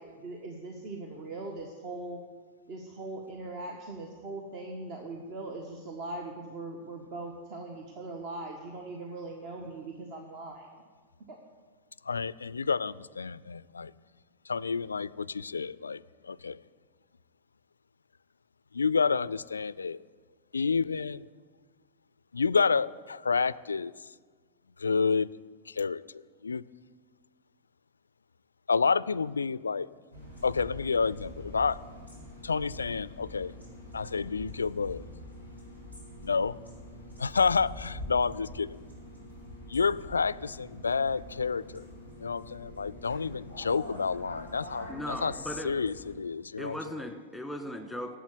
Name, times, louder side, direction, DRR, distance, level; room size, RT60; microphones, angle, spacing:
voice 1, 0.0-2.2 2.7-10.7 11.3-11.4, right 2 dB, 40° right, 1.5 m, -40 dB
voice 2, 12.0-13.9 14.5-16.6 18.7-20.0 20.5-21.2 22.3-24.1 24.8-25.3 25.7-26.6 28.7-29.9 30.4-31.8 32.4-33.5 33.9-35.0 36.2-36.6 37.2-38.8 39.7-41.8 42.2-45.3 45.6-46.8, left 5 dB, 75° left, 0.3 m, -29 dB
sound 1, 30.1-46.2, left 1 dB, 80° right, 4.3 m, -45 dB
voice 3, 44.9-45.7 46.6-48.2, equal, ahead, 1.7 m, -37 dB
11.0 x 8.3 x 9.4 m
figure-of-eight pair, 90°, 0 cm